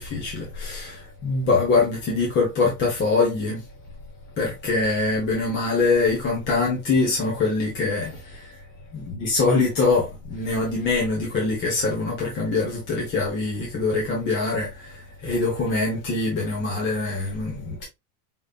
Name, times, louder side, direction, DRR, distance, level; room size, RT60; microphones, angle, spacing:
voice 1, 0.0-3.6 4.4-8.5 8.9-17.8, left 3 dB, 25° left, 1.3 m, -24 dB
5.4 x 3.2 x 2.4 m
supercardioid pair, 160°, 46 cm